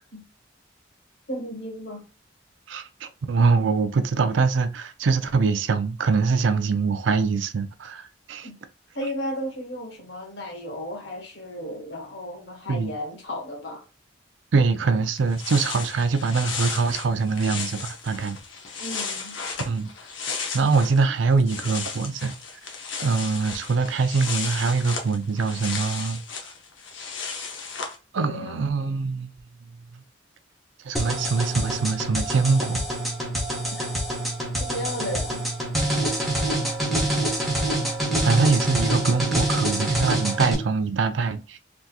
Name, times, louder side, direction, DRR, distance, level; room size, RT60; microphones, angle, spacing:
voice 1, 1.3-2.0 8.4-8.6 8.9-13.8 18.8-19.4 28.2-28.6 33.7-33.8 34.6-35.4, equal, 65° left, 1.5 m, -34 dB
voice 2, 2.7-8.5 12.7-12.9 14.5-18.4 19.7-19.9 20.5-22.3 23.0-26.2 28.1-29.3 30.8-32.8 38.2-41.6, right 4 dB, 70° right, 0.4 m, -23 dB
sound 1, 15.2-21.0 21.3-28.0, left 5 dB, 80° left, 0.8 m, -34 dB
sound 2, 31.0-40.6, right 1 dB, ahead, 0.9 m, -26 dB
3.5 x 2.8 x 2.3 m
head